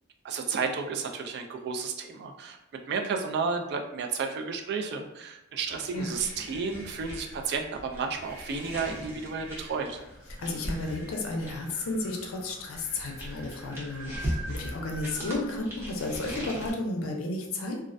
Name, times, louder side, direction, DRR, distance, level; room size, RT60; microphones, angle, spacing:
voice 1, 0.2-2.6 2.9-10.0, right 5 dB, 55° right, 4 dB, 0.3 m, -32 dB
sound 1, 5.6-15.4, right 2 dB, 75° right, 0.7 m, -47 dB
sound 2, 6.1-11.9 12.7-16.7, equal, 10° right, 0.6 m, -39 dB
voice 2, 10.4-17.8, left 2 dB, 90° left, 0 dB, 0.5 m, -33 dB
2.4 x 2.1 x 2.5 m, 0.90 s
head